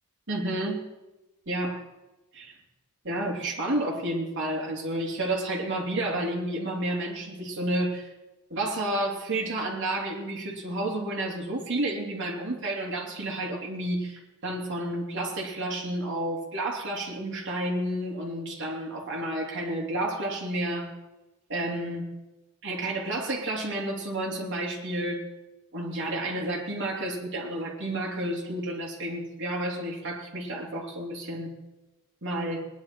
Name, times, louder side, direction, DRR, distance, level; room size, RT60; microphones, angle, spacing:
voice 1, 0.3-0.9 1.5-1.8 2.3-2.5 3.0-8.1 8.5-20.9 21.5-22.1 22.6-25.3 25.7-31.5 32.2-32.7, right 1 dB, 55° right, -2 dB, 3.1 m, -31 dB
19.5 x 11.0 x 4.6 m, 1.0 s
head